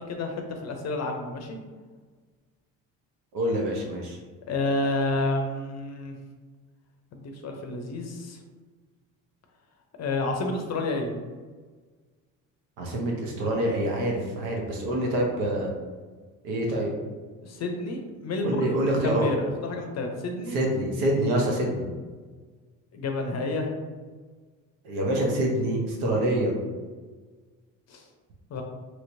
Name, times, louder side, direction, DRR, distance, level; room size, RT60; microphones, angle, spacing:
voice 1, 0.0-1.6 4.5-6.2 7.1-8.4 10.0-11.2 17.4-18.7 19.0-20.6 22.9-23.7 27.9-28.0 28.5-28.6, left 2 dB, 40° left, 3 dB, 0.6 m, -30 dB
voice 2, 3.3-4.2 12.8-15.7 16.4-16.9 18.4-19.3 20.5-21.9 24.8-26.6, right 1 dB, 65° right, 0 dB, 0.9 m, -26 dB
3.0 x 2.9 x 2.6 m, 1.4 s
hypercardioid pair, 65°, 42 cm